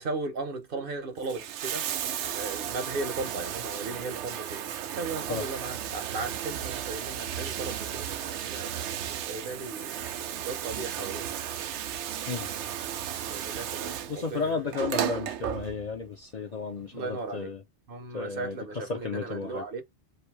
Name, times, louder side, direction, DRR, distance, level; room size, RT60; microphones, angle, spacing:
voice 1, 0.0-1.8 2.3-8.7 9.0-9.9 10.4-11.3 13.3-14.7 16.9-17.5 17.9-19.8, right 3 dB, 55° right, 0.9 m, -36 dB
Bathtub (filling or washing), 1.1-16.1 17.2-17.3, right 10 dB, 85° right, 0.9 m, -34 dB
voice 2, 14.1-17.6 18.1-18.6 18.9-19.6, left 4 dB, 45° left, 0.6 m, -33 dB
3.2 x 2.6 x 4.5 m
omnidirectional pair, 1.1 m